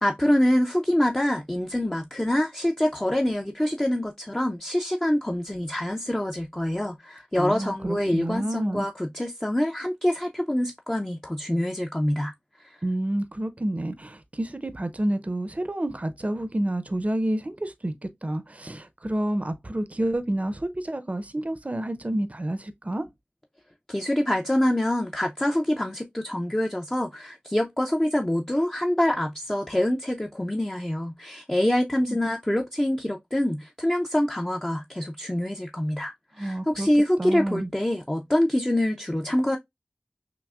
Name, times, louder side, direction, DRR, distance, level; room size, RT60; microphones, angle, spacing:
voice 1, 0.0-12.3 12.6-12.8 23.9-39.6, left 1 dB, 20° left, 0.5 m, -25 dB
voice 2, 7.4-8.9 12.8-17.9 18.2-23.1 32.1-32.2 36.4-36.9 37.2-37.7, right 1 dB, 40° right, 0.6 m, -29 dB
5.9 x 2.0 x 2.3 m
wide cardioid pair, 40°, 4 cm